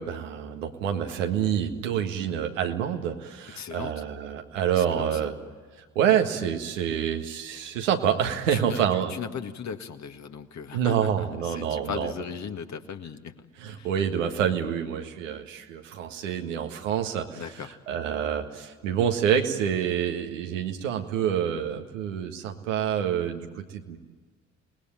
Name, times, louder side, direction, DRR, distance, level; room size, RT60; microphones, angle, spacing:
voice 1, 0.0-5.3 6.0-9.1 10.7-12.1 13.6-17.4 17.9-24.0, right 9 dB, 80° right, 4 dB, 1.8 m, -27 dB
voice 2, 3.5-4.0 4.7-5.2 8.5-13.4 13.8-13.9 17.3-17.7, left 7 dB, 45° left, 7 dB, 1.9 m, -37 dB
28.0 x 20.0 x 9.0 m, 1.4 s
hypercardioid pair, 50°, 37 cm